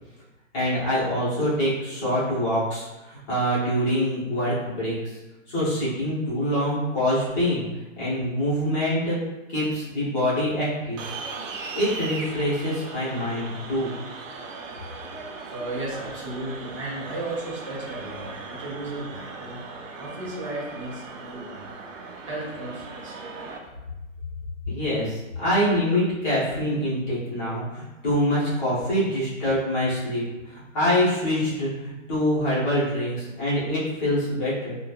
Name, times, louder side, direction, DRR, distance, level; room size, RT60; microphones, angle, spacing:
voice 1, 0.5-5.2 5.5-7.7 7.9-9.2 9.5-11.1 11.7-13.9 24.7-34.8, equal, 25° left, -9 dB, 1.0 m, -25 dB
sound 1, 11.0-23.6, right 4 dB, 75° right, 0.6 m, -38 dB
voice 2, 15.5-19.6 19.9-21.6 22.2-23.1 23.6-23.7, right 2 dB, 25° right, -5 dB, 0.5 m, -34 dB
3.1 x 2.3 x 2.3 m, 1.1 s
hypercardioid pair, 155°, 39 cm